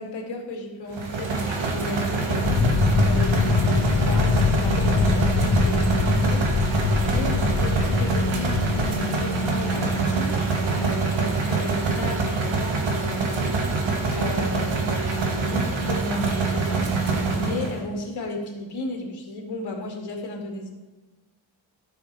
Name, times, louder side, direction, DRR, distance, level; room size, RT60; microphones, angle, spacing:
voice 1, 0.0-6.5 7.0-13.8 14.1-20.7, left 2 dB, 55° left, 1 dB, 2.2 m, -34 dB
sound 1, 0.9-17.8, right 3 dB, 75° right, 1.6 m, -25 dB
sound 2, 2.4-8.9, left 5 dB, 35° left, 0.6 m, -23 dB
13.5 x 6.7 x 3.3 m, 1.2 s
wide cardioid pair, 140°, 46 cm